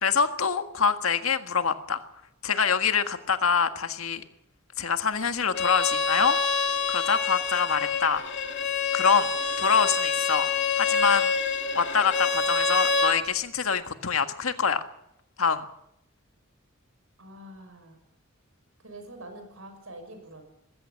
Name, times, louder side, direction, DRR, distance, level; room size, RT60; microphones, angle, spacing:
voice 1, 0.0-2.0 2.4-4.2 4.8-8.2 8.9-9.3 9.6-10.5 10.8-11.3 11.7-14.8 15.4-15.6, left 6 dB, 75° left, 8 dB, 1.7 m, -25 dB
Bowed string instrument, 5.5-13.2, left 5 dB, 55° left, 2.7 m, -26 dB
voice 2, 17.2-18.0 18.8-20.4, right 1 dB, 70° right, 6 dB, 6.2 m, -45 dB
21.0 x 16.0 x 8.5 m, 0.78 s
head